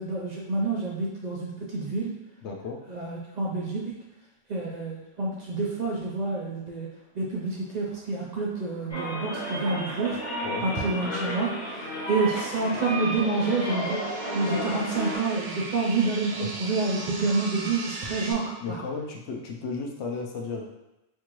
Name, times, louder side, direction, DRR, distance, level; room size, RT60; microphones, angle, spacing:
voice 1, 0.0-2.1 2.9-3.8 4.5-6.9 7.1-10.2 10.6-14.0 14.3-18.4 18.7-18.8, right 3 dB, 50° right, -4 dB, 0.5 m, -28 dB
voice 2, 2.4-2.8 10.4-10.7 16.4-16.5 18.6-20.6, left 4 dB, 75° left, 1 dB, 0.9 m, -34 dB
sound 1, 7.5-18.3, right 2 dB, 80° right, 0.9 m, -41 dB
sound 2, 8.9-15.2, equal, 40° left, 1.2 m, -32 dB
4.4 x 2.4 x 3.0 m, 0.95 s
omnidirectional pair, 1.2 m